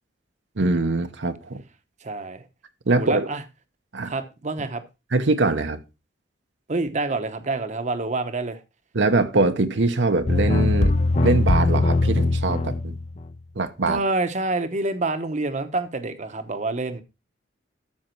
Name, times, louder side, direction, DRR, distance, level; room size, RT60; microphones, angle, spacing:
voice 1, 0.6-1.6 2.9-3.3 3.9-4.1 5.1-5.8 8.9-10.9 11.2-13.0 13.6-14.0, right 3 dB, 75° right, 1.0 m, -22 dB
voice 2, 2.0-2.4 2.9-3.4 4.0-4.8 6.7-8.6 13.9-17.0, right 2 dB, 40° right, 1.0 m, -27 dB
sound 1, 10.3-13.3, left 2 dB, 40° left, 0.7 m, -21 dB
13.0 x 5.3 x 4.5 m
head